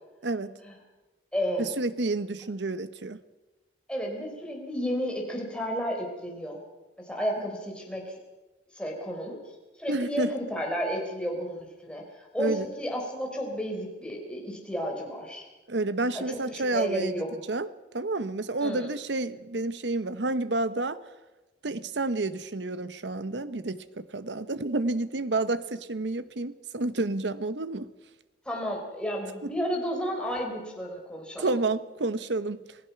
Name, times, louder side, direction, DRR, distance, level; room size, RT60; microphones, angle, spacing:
voice 1, 0.2-0.6 1.6-3.2 9.9-10.3 12.4-12.7 15.7-17.7 17.9-21.0 21.6-27.9 31.4-32.6, right 2 dB, 80° right, 0.9 m, -30 dB
voice 2, 1.3-1.8 3.9-6.6 7.0-8.2 8.7-9.4 9.8-15.4 16.1-17.3 18.6-18.9 28.5-31.5, equal, 5° left, 3.8 m, -32 dB
26.5 x 16.5 x 5.8 m
head